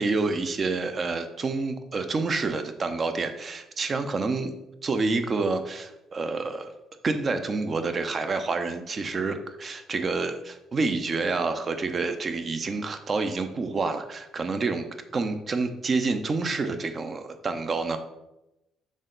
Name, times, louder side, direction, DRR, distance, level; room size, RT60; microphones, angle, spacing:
voice 1, 0.0-4.6 4.8-6.7 7.0-14.9 15.1-18.0, right 3 dB, 40° right, 8 dB, 0.7 m, -28 dB
6.4 x 3.9 x 3.8 m, 0.94 s
supercardioid pair, 75°, 0 cm